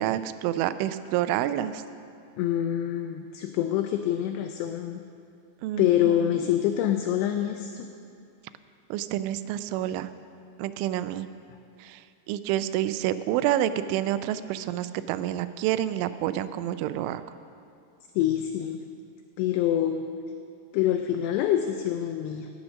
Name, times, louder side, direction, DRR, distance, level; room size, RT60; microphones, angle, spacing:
voice 1, 0.0-1.8 5.6-6.1 8.9-10.1 10.6-11.3 11.8-12.0 12.3-17.2, right 12 dB, 90° right, 12 dB, 3.0 m, -28 dB
voice 2, 2.4-5.0 5.8-7.9 18.2-18.8 19.4-20.1 20.7-22.5, left 11 dB, 90° left, 6 dB, 2.4 m, -26 dB
18.5 x 6.3 x 6.2 m, 2.5 s
omnidirectional pair, 5.4 m